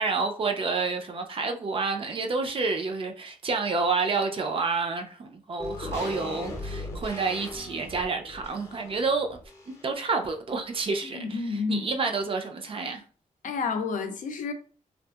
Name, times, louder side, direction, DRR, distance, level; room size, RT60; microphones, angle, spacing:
voice 1, 0.0-9.4 9.7-13.0, right 4 dB, 40° right, 0.4 m, -29 dB
sound 1, 5.6-10.1 10.4-10.5, left 2 dB, 20° left, 0.6 m, -38 dB
voice 2, 11.1-11.9 13.4-14.5, left 4 dB, 65° left, 0.4 m, -30 dB
2.7 x 2.4 x 2.3 m
wide cardioid pair, 135°, 14 cm